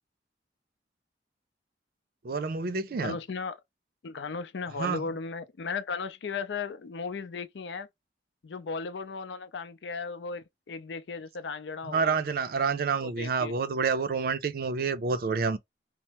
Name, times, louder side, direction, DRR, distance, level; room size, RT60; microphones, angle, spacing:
voice 1, 2.2-3.2 4.8-5.0 11.9-15.6, right 5 dB, 55° right, 0.4 m, -28 dB
voice 2, 3.0-3.6 4.0-7.9 8.4-12.1 13.0-13.5, left 5 dB, 80° left, 0.5 m, -36 dB
4.4 x 2.0 x 2.8 m
head